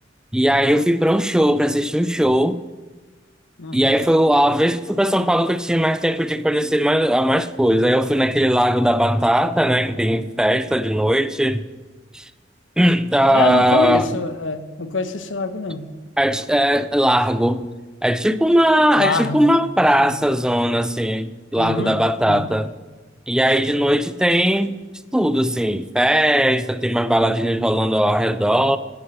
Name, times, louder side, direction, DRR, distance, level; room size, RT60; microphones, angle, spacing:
voice 1, 0.3-2.6 3.7-11.6 12.1-12.3 12.8-14.1 16.2-17.7 18.0-22.7 23.3-24.7 25.1-28.8, equal, 5° right, 0.4 m, -18 dB
voice 2, 3.6-3.9 13.3-15.9 19.0-19.5 20.0-20.1 21.6-22.0 22.3-22.5, left 3 dB, 75° left, 1.1 m, -25 dB
11.5 x 11.0 x 6.7 m
head